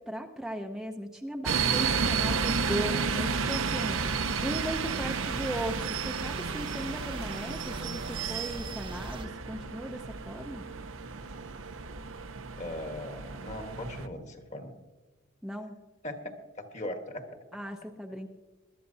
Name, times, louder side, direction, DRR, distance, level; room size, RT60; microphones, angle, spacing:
voice 1, 0.0-10.7 15.4-15.8 17.5-18.3, equal, ahead, 3 dB, 0.5 m, -37 dB
sound 1, 1.4-14.1, right 5 dB, 70° right, 0.7 m, -32 dB
sound 2, 3.9-9.3, right 2 dB, 25° right, 0.9 m, -43 dB
voice 2, 12.6-14.7 16.0-16.3 16.7-17.3, left 1 dB, 35° left, 5 dB, 1.4 m, -38 dB
21.5 x 12.0 x 2.7 m, 1.3 s
head